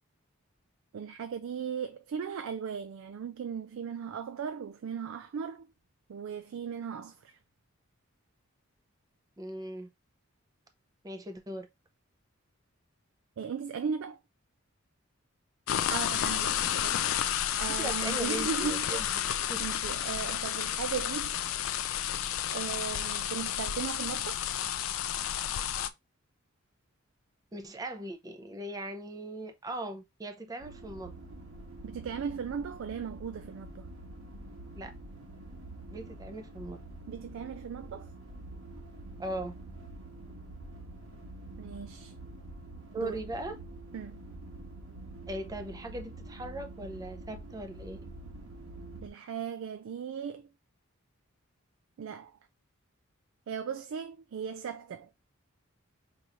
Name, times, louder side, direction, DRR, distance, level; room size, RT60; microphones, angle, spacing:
voice 1, 0.9-5.7 6.1-7.4 13.4-14.2 15.9-19.0 19.6-21.3 22.5-24.5 31.8-33.9 37.1-38.1 41.6-42.1 43.0-43.2 43.9-44.2 49.0-50.5 52.0-52.3 53.5-55.1, right 7 dB, 70° right, 0.3 m, -37 dB
voice 2, 9.4-9.9 11.0-11.7 17.8-19.1 19.5-19.6 27.5-31.1 34.7-34.9 35.9-36.8 39.2-39.5 42.9-43.6 45.3-48.0, right 1 dB, 15° right, 0.5 m, -39 dB
sound 1, 15.7-25.9, left 10 dB, 65° left, 0.4 m, -31 dB
sound 2, 30.6-49.1, right 2 dB, 85° right, 1.2 m, -46 dB
4.8 x 3.0 x 2.5 m
head